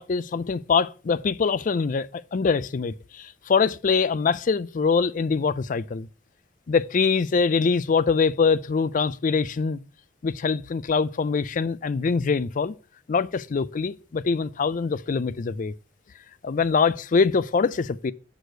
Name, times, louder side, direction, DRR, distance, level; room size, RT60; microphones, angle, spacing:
voice 1, 0.0-6.1 6.7-9.8 10.2-12.7 13.1-15.7 16.4-18.1, left 5 dB, 45° left, 0.4 m, -24 dB
6.2 x 4.9 x 6.4 m
head